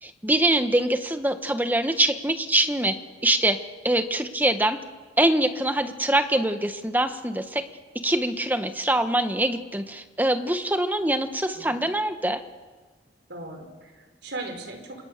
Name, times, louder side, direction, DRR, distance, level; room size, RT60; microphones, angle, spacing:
voice 1, 0.0-2.9 3.2-4.8 5.2-7.6 8.0-12.4, right 1 dB, 10° right, 8 dB, 1.4 m, -24 dB
voice 2, 11.5-11.9 13.3-15.0, right 2 dB, 70° right, 4 dB, 4.9 m, -38 dB
27.5 x 27.0 x 6.8 m, 1.4 s
head